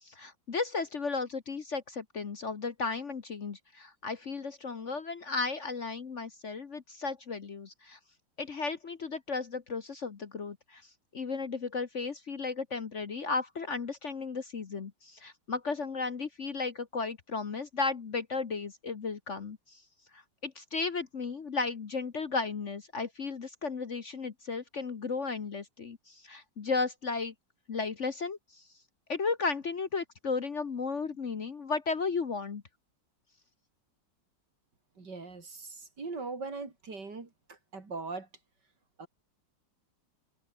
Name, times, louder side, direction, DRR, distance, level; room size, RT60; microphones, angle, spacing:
voice 1, 0.0-8.0 8.4-10.8 11.1-19.8 20.1-27.3 27.7-28.6 29.1-32.6, left 4 dB, 45° left, 1.4 m, -34 dB
voice 2, 35.0-38.3 39.0-39.1, right 4 dB, 65° right, 4.3 m, -40 dB
omnidirectional pair, 2.0 m